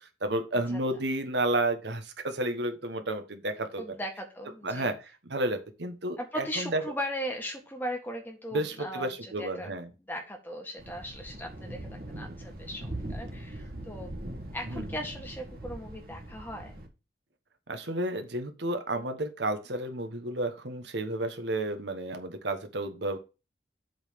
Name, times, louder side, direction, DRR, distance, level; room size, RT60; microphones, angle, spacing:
voice 1, 0.0-3.8 4.6-6.8 8.5-9.9 14.7-14.9 17.7-23.2, right 1 dB, 70° right, 7 dB, 1.3 m, -31 dB
voice 2, 3.8-4.9 6.2-9.7 10.1-14.2 14.5-16.8, equal, 10° left, 2 dB, 1.7 m, -38 dB
Thunder, 10.8-16.9, right 1 dB, 50° right, 1.6 m, -41 dB
7.9 x 4.1 x 6.9 m, 0.30 s
head